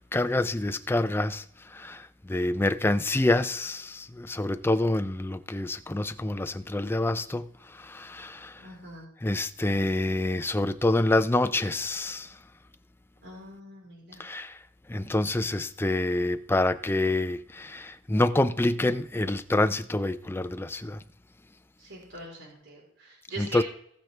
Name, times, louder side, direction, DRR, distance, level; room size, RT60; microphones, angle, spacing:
voice 1, 0.1-8.7 9.2-12.4 14.2-14.6 14.9-21.0 23.4-23.6, left 2 dB, 10° left, 0.4 m, -27 dB
voice 2, 8.6-9.1 13.2-14.2 21.8-23.6, right 2 dB, 55° right, 4.0 m, -42 dB
19.0 x 6.4 x 3.4 m
head